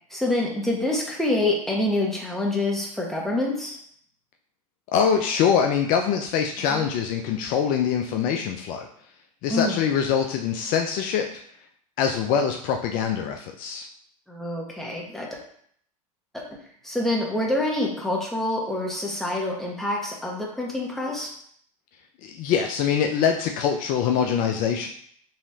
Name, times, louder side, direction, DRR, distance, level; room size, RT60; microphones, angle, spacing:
voice 1, 0.1-3.8 9.5-9.8 14.3-15.3 16.3-16.4 16.8-21.3, left 2 dB, ahead, -3 dB, 1.4 m, -26 dB
voice 2, 4.9-8.9 9.4-11.4 12.0-13.9 22.2-24.9, left 7 dB, 50° left, 3 dB, 0.5 m, -24 dB
5.6 x 3.0 x 2.8 m, 0.62 s
hypercardioid pair, 85°, 18 cm